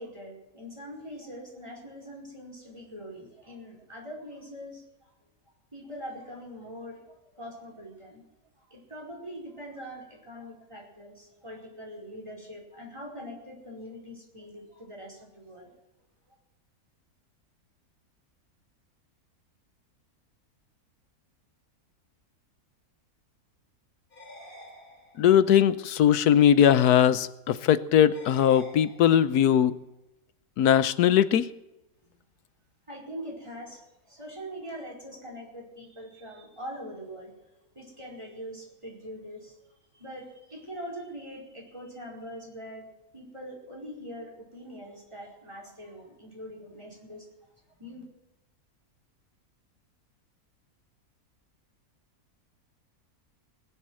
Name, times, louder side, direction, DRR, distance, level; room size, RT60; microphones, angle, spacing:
voice 1, 0.0-5.1 5.7-8.2 8.6-15.7 32.9-37.3 37.7-42.8 43.1-47.3 47.8-48.0, equal, 20° right, -1 dB, 4.9 m, -43 dB
sound 1, 24.1-25.5 28.1-29.5, equal, 35° left, 3.3 m, -49 dB
voice 2, 25.2-29.8 30.6-31.4, left 9 dB, 90° left, 15 dB, 1.3 m, -20 dB
20.5 x 8.1 x 7.7 m, 0.94 s
omnidirectional pair, 1.6 m